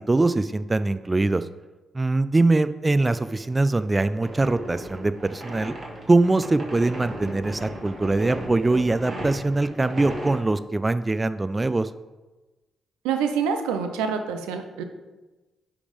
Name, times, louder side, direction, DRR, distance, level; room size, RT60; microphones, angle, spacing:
voice 1, 0.1-1.5 1.9-5.7 6.1-11.9, right 2 dB, 25° right, 13 dB, 0.4 m, -22 dB
sound 1, 4.2-10.4, right 1 dB, 40° right, 2.3 m, -36 dB
voice 2, 13.0-14.8, right 6 dB, 90° right, 7 dB, 0.6 m, -26 dB
9.8 x 3.5 x 5.2 m, 1.2 s
supercardioid pair, 50°, 0 cm